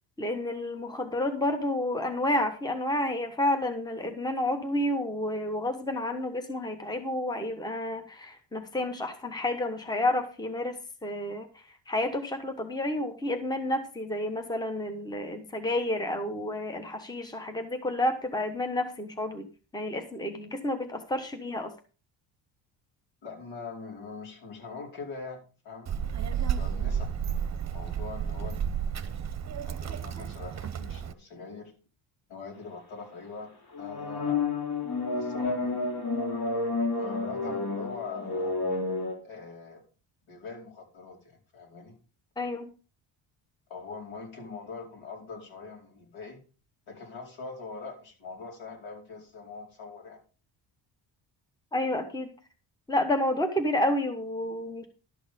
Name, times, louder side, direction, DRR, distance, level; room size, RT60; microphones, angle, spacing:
voice 1, 0.2-10.7 11.0-11.5 11.9-19.5 19.7-21.7 42.4-42.7 51.7-52.3 52.9-54.9, left 1 dB, 10° left, 7 dB, 1.2 m, -30 dB
voice 2, 23.2-25.9 26.5-27.1 27.7-28.9 29.5-31.7 32.3-33.5 33.8-34.5 35.1-35.8 37.0-38.5 39.2-39.8 40.3-42.0 43.7-46.4 46.9-50.2, left 4 dB, 75° left, 0 dB, 4.7 m, -42 dB
Child speech kid speaking, 25.9-31.1, right 8 dB, 35° right, 0.9 m, -32 dB
sound 1, 33.7-39.1, left 3 dB, 50° left, 3.4 m, -30 dB
12.0 x 6.3 x 5.1 m, 0.36 s
cardioid pair, 120°, 47 cm